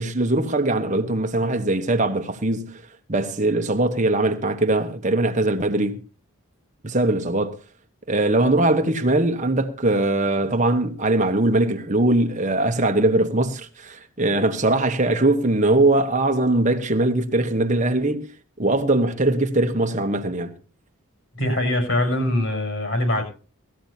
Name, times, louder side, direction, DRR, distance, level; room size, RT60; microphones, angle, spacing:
voice 1, 0.0-2.8 3.1-6.0 6.8-7.6 8.1-18.3 18.6-20.5, right 2 dB, 35° right, 1.2 m, -21 dB
voice 2, 21.4-23.2, left 1 dB, 60° left, 7.3 m, -22 dB
19.5 x 14.5 x 2.8 m
head